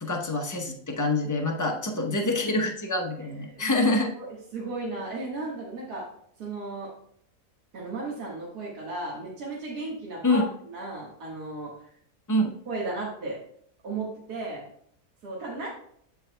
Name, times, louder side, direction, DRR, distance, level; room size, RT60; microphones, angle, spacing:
voice 1, 0.0-4.1 10.2-10.5 12.3-12.5, left 2 dB, 25° left, 1 dB, 0.3 m, -26 dB
voice 2, 3.2-3.6 4.1-6.1 6.4-6.9 7.7-11.9 12.7-13.4 13.8-14.6 15.2-15.7, right 2 dB, 70° right, -5 dB, 2.1 m, -35 dB
14.0 x 4.7 x 2.2 m, 0.66 s
omnidirectional pair, 1.7 m